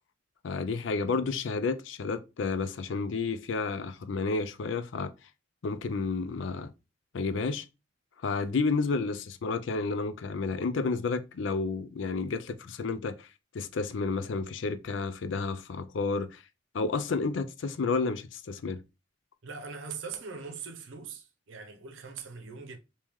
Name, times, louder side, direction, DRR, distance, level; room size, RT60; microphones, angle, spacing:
voice 1, 0.4-5.1 5.6-6.7 7.1-7.7 8.2-13.3 13.5-16.4 16.7-18.8, left 4 dB, 70° left, 0.4 m, -31 dB
voice 2, 19.4-22.8, right 5 dB, 75° right, 0.7 m, -41 dB
3.1 x 2.9 x 3.5 m
head